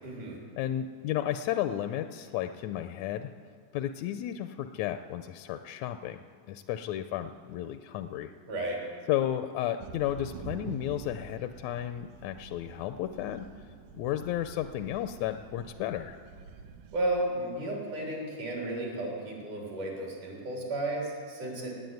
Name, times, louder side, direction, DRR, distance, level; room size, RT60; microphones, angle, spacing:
voice 1, 0.0-0.4 8.5-8.8 16.9-21.7, right 1 dB, 70° right, -2 dB, 4.9 m, -33 dB
voice 2, 0.6-3.3 3.7-8.3 9.1-13.5 13.9-16.2, left 12 dB, 80° left, 9 dB, 1.6 m, -33 dB
sound 1, 9.8-17.2, right 6 dB, 90° right, 2.2 m, -47 dB
18.0 x 8.4 x 9.3 m, 2.3 s
omnidirectional pair, 3.6 m